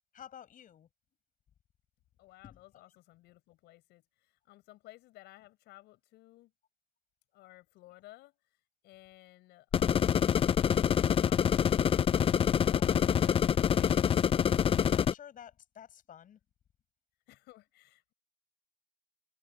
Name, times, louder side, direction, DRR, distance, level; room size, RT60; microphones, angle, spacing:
voice 1, 0.1-0.9 2.4-2.6 12.6-16.4, left 9 dB, 50° left, 7.9 m, -52 dB
voice 2, 2.2-6.5 7.3-12.0 17.3-18.1, left 17 dB, 85° left, 6.5 m, -57 dB
sound 1, 9.7-15.1, left 8 dB, 35° left, 0.4 m, -26 dB
cardioid pair, 110°, 17 cm